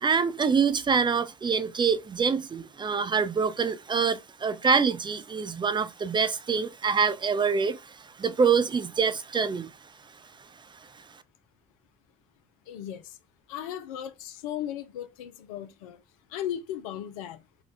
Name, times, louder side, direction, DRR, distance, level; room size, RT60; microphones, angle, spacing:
voice 1, 0.0-9.7, right 5 dB, 25° right, 0.6 m, -25 dB
voice 2, 12.7-13.2 13.5-16.0 16.3-17.4, left 10 dB, 75° left, 0.5 m, -36 dB
3.9 x 2.3 x 3.9 m
hypercardioid pair, 55°, 18 cm